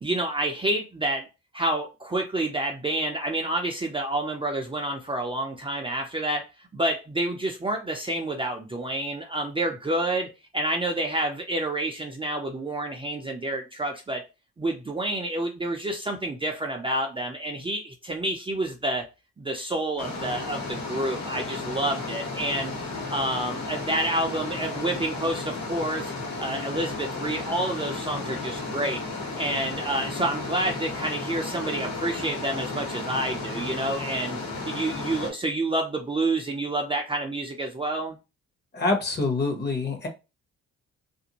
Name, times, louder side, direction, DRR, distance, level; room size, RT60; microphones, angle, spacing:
voice 1, 0.0-1.3 1.5-6.5 6.7-14.2 14.6-19.0 19.4-22.7 23.1-26.1 26.4-29.0 29.3-34.4 34.6-38.2, right 1 dB, 15° right, 0.5 m, -28 dB
sound 1, 20.0-35.3, left 3 dB, 65° left, 1.3 m, -33 dB
voice 2, 38.7-40.1, left 3 dB, 35° left, 1.0 m, -26 dB
2.5 x 2.1 x 2.9 m
cardioid pair, 90°, 30 cm